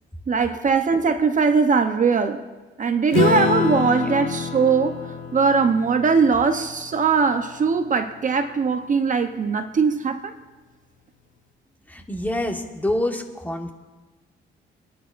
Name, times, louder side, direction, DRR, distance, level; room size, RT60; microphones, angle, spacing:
voice 1, 0.3-2.4 2.8-10.4, right 5 dB, 40° right, 0.8 m, -20 dB
Acoustic guitar / Strum, 3.1-8.0, left 6 dB, 90° left, 1.1 m, -27 dB
voice 2, 11.9-13.7, left 1 dB, 10° left, 1.4 m, -27 dB
26.5 x 10.0 x 2.6 m
cardioid pair, 90°, 20 cm